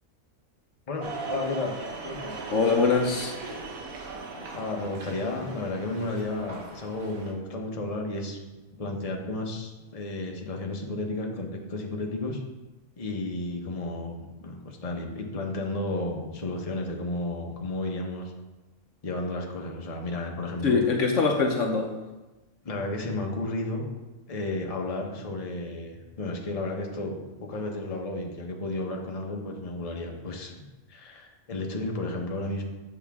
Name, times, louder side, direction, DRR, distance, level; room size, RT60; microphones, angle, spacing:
voice 1, 0.9-1.8 2.0-2.4 4.4-8.4 8.8-12.4 13.0-18.3 19.0-20.8 22.6-23.9 24.3-30.5 30.9-32.6, left 2 dB, 30° left, 1 dB, 1.0 m, -33 dB
sound 1, 1.0-7.3, right 2 dB, 90° right, 1.5 m, -38 dB
voice 2, 2.5-3.3 20.6-21.9, left 4 dB, 65° left, 2 dB, 1.1 m, -23 dB
8.0 x 6.9 x 3.6 m, 1.1 s
omnidirectional pair, 1.4 m